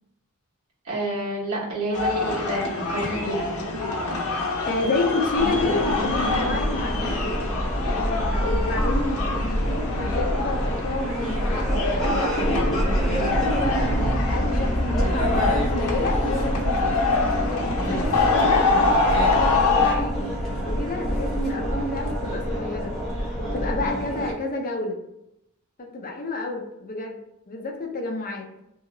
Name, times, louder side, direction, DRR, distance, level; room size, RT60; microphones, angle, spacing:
voice 1, 0.8-3.5, right 1 dB, 90° right, -5 dB, 1.2 m, -28 dB
sound 1, 1.9-20.0, left 3 dB, 90° left, 0.7 m, -26 dB
voice 2, 4.7-7.2 7.9-17.1 17.9-22.9 23.4-25.0 25.8-27.2 27.5-28.5, left 2 dB, 40° left, 1 dB, 0.6 m, -30 dB
sound 2, 5.4-24.3, equal, ahead, 0.8 m, -26 dB
2.7 x 2.0 x 3.8 m, 0.82 s
head